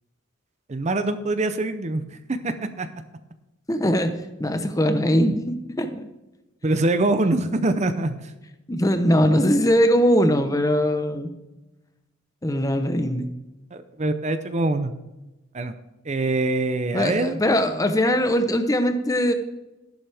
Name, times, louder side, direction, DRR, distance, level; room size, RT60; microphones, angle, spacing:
voice 1, 0.7-2.0 2.3-2.9 6.6-8.2 13.7-14.9 15.5-15.7 16.1-17.4, right 2 dB, 35° right, 10 dB, 0.6 m, -24 dB
voice 2, 3.7-4.1 4.4-6.0 8.7-11.3 12.4-13.3 16.9-19.3, equal, 15° left, 8 dB, 0.9 m, -21 dB
12.5 x 11.5 x 3.4 m, 1.0 s
head